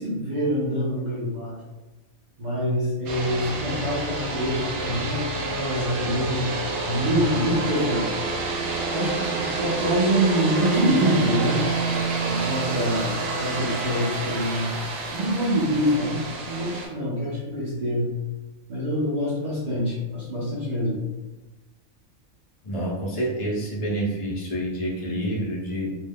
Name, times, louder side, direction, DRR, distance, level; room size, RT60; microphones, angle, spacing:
voice 1, 0.0-1.6 2.4-6.5 6.9-8.2 8.9-14.7 15.1-18.1 18.7-21.0, equal, 45° right, -9 dB, 0.6 m, -25 dB
sound 1, 3.1-16.9, right 3 dB, 80° right, 1.1 m, -28 dB
voice 2, 22.6-25.9, right 1 dB, 40° left, -3 dB, 0.5 m, -28 dB
2.6 x 2.0 x 3.4 m, 1.1 s
omnidirectional pair, 1.5 m